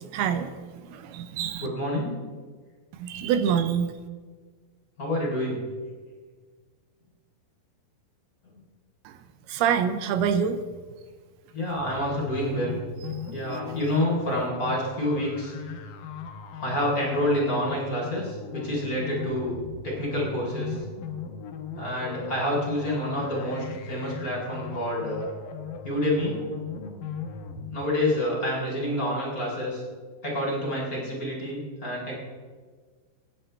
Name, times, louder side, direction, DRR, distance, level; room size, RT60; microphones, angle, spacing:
voice 1, 0.1-0.5 0.9-1.7 3.0-3.9 9.5-10.6, right 8 dB, 85° right, 9 dB, 2.8 m, -25 dB
voice 2, 1.6-2.2 5.0-5.6 11.5-12.8 13.3-15.5 16.6-20.8 21.8-25.3 25.8-26.4 27.7-29.8 30.2-32.1, left 1 dB, 20° left, -4 dB, 3.9 m, -28 dB
sound 1, 11.7-27.7, left 6 dB, 70° left, 2.6 m, -38 dB
27.0 x 9.6 x 3.4 m, 1.5 s
omnidirectional pair, 4.4 m